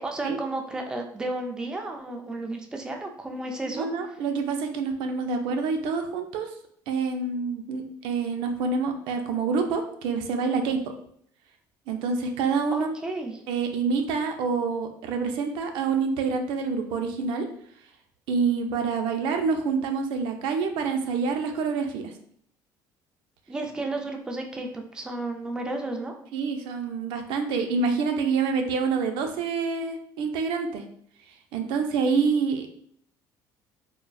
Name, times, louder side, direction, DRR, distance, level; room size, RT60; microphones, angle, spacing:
voice 1, 0.0-3.9 12.7-13.4 23.5-26.1, right 2 dB, 10° right, 3 dB, 0.3 m, -32 dB
voice 2, 3.7-6.5 6.9-10.8 11.9-12.9 13.5-17.5 18.3-22.1 26.3-30.8 31.5-32.7, right 5 dB, 80° right, 5 dB, 0.4 m, -27 dB
3.8 x 2.1 x 2.2 m, 0.65 s
cardioid pair, 135°, 8 cm